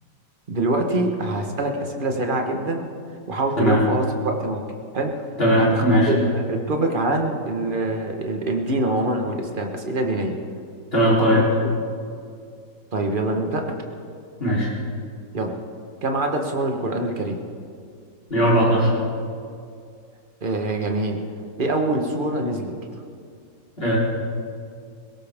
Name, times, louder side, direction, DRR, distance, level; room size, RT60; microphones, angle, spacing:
voice 1, 0.5-2.9 3.3-4.6 4.9-5.1 5.6-10.4 11.3-11.4 12.9-13.7 15.3-15.5 16.0-17.4 20.4-21.2 21.6-22.7, right 2 dB, 30° right, 3 dB, 1.4 m, -24 dB
voice 2, 5.4-6.1 10.9-11.4 14.4-14.7 18.3-18.9 23.8-24.0, equal, 30° left, -5 dB, 3.9 m, -18 dB
21.0 x 18.0 x 3.7 m, 2.3 s
omnidirectional pair, 1.9 m